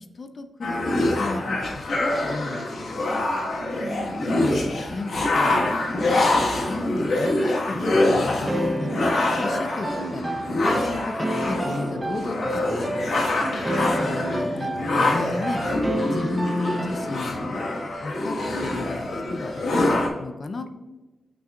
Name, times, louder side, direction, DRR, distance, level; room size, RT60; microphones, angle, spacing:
voice 1, 0.2-2.9 4.4-5.6 6.6-7.8 8.0-9.2 9.4-12.9 14.0-15.6 16.1-17.8 18.0-18.3 18.6-20.7, left 3 dB, 35° left, 8 dB, 0.5 m, -33 dB
sound 1, 0.6-20.1, left 2 dB, 80° left, 1.6 m, -25 dB
voice 2, 3.6-4.7 8.8-9.1 13.4-13.9, right 2 dB, 60° right, 1 dB, 1.4 m, -37 dB
sound 2, 8.5-17.4, right 1 dB, 15° right, 0.9 m, -30 dB
9.0 x 6.1 x 2.5 m, 1.1 s
wide cardioid pair, 160°, 0 cm